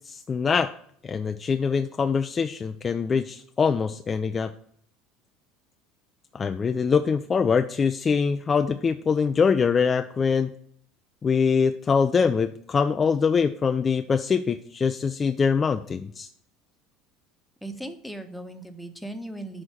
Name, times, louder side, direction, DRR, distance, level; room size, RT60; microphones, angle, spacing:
voice 1, 0.1-0.7 1.0-4.5 6.3-10.5 11.2-16.3, left 5 dB, 30° left, 8 dB, 0.3 m, -23 dB
voice 2, 17.6-19.6, right 1 dB, ahead, 6 dB, 1.0 m, -37 dB
6.3 x 4.3 x 6.5 m, 0.63 s
figure-of-eight pair, 70°, 0 cm